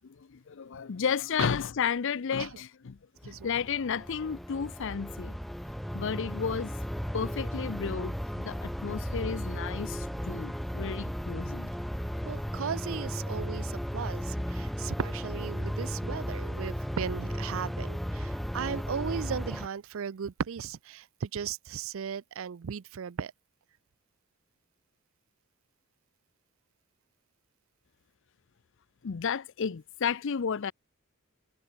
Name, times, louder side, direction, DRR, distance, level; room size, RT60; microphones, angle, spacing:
voice 1, 0.5-3.0 3.2-5.3 5.9-6.7 7.1-11.7 29.0-30.7, left 6 dB, 60° left, 0.5 m, -32 dB
sound 1, 3.2-19.7, equal, ahead, 0.3 m, -35 dB
voice 2, 12.2-23.3, right 7 dB, 65° right, 0.4 m, -36 dB
head